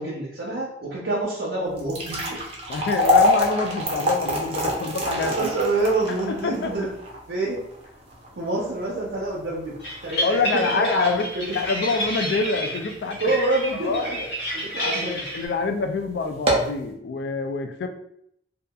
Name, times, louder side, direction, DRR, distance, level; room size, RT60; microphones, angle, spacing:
voice 1, 0.0-2.4 5.4-6.9 7.3-7.6 8.4-9.8 10.0-11.5 13.2-14.3 14.5-15.2, right 2 dB, 75° right, -5 dB, 0.6 m, -27 dB
sound 1, 1.7-14.0 14.4-14.5 15.2-15.4 15.7-15.8 16.3-16.8, left 1 dB, 35° right, 0.5 m, -26 dB
voice 2, 2.7-5.5 6.2-6.7 10.2-11.3 11.5-13.2 13.7-14.0 14.8-17.9, left 4 dB, 70° left, 7 dB, 0.3 m, -26 dB
sound 2, 9.8-15.5, equal, 85° left, 1.0 m, -30 dB
2.7 x 2.3 x 2.3 m, 0.73 s
head